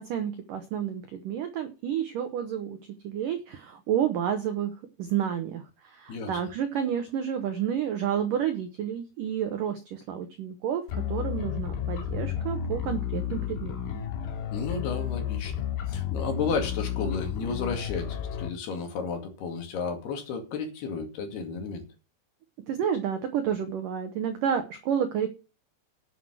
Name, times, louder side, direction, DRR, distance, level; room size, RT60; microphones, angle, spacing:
voice 1, 0.0-4.7 5.0-10.8 11.1-14.0 22.7-25.3, right 9 dB, 80° right, 8 dB, 1.9 m, -30 dB
voice 2, 6.1-6.4 14.5-21.8, left 5 dB, 60° left, 4 dB, 4.0 m, -33 dB
sound 1, 10.9-18.5, left 9 dB, 80° left, 4.7 m, -32 dB
12.0 x 8.0 x 6.2 m, 0.32 s
omnidirectional pair, 5.5 m